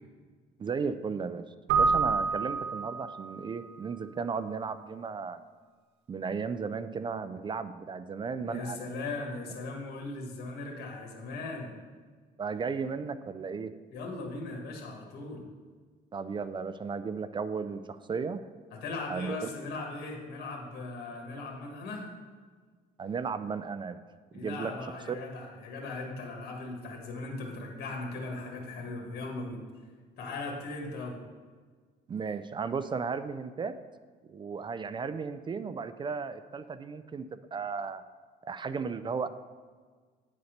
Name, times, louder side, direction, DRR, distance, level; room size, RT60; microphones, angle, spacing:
voice 1, 0.6-1.4 1.7-5.4 6.1-8.8 12.4-13.7 16.1-18.4 19.1-19.5 23.0-24.0 24.3-24.7 25.1-25.2 32.1-33.7 34.3-38.0 38.4-39.3, right 5 dB, 30° right, 12 dB, 0.4 m, -35 dB
Keyboard (musical), 1.7-3.5, right 5 dB, 80° right, 1.1 m, -27 dB
voice 2, 8.4-11.7 13.9-15.5 18.7-22.1 24.3-29.6 30.2-31.2, left 3 dB, 70° left, 1 dB, 1.7 m, -38 dB
9.2 x 4.2 x 6.5 m, 1.5 s
cardioid pair, 110°, 17 cm